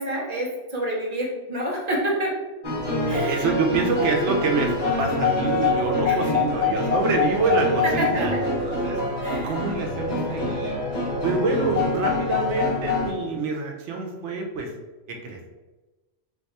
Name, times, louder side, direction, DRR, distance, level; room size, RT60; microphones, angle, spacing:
voice 1, 0.0-2.3 3.1-3.5 6.1-6.4 7.8-8.4 9.2-9.6, right 1 dB, 40° right, -3 dB, 0.7 m, -28 dB
sound 1, 2.6-13.1, left 3 dB, 40° left, 0.9 m, -25 dB
voice 2, 3.3-9.0 9.4-10.8 11.2-14.7 15.1-15.4, right 3 dB, 80° right, 2 dB, 1.0 m, -26 dB
2.7 x 2.3 x 4.0 m, 1.2 s
omnidirectional pair, 1.2 m